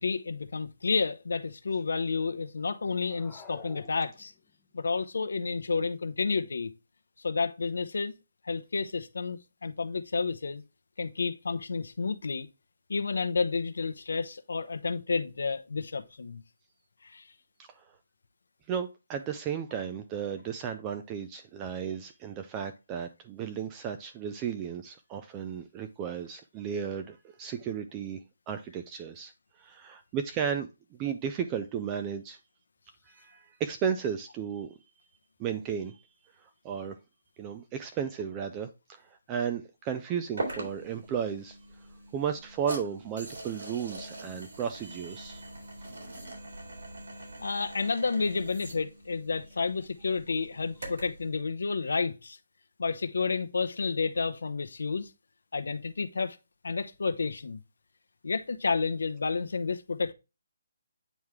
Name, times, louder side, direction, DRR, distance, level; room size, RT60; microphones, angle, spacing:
voice 1, 0.0-4.3 4.7-6.7 7.2-8.1 8.4-10.6 11.0-12.5 12.9-16.4 17.0-17.3 47.4-52.4 52.8-55.1 55.5-56.4 56.6-57.6 58.2-60.1, left 4 dB, 80° left, 0.8 m, -30 dB
sound 1, 3.0-4.6, left 5 dB, 10° left, 0.7 m, -49 dB
voice 2, 18.7-29.3 29.6-32.4 33.1-34.8 35.4-36.0 36.4-37.0 37.4-41.6 42.1-45.4, right 8 dB, 15° right, 0.4 m, -34 dB
sound 2, 40.4-51.2, right 2 dB, 65° right, 3.4 m, -42 dB
9.0 x 3.2 x 3.5 m
hypercardioid pair, 170°, 0 cm